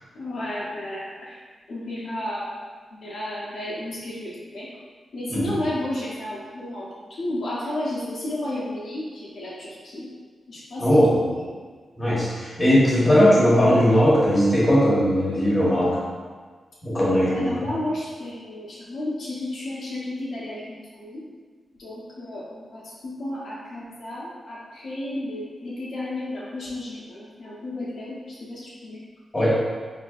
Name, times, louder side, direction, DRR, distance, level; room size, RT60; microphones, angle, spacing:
voice 1, 0.1-1.4 1.7-2.6 3.0-4.7 5.1-10.1 10.5-11.4 17.3-21.2 21.8-29.0, left 1 dB, 65° left, -7 dB, 0.7 m, -32 dB
voice 2, 10.8-11.1 12.0-16.0 16.8-17.6 29.3-29.6, equal, 20° left, -7 dB, 1.1 m, -18 dB
4.1 x 2.7 x 2.3 m, 1.5 s
wide cardioid pair, 135°, 0 cm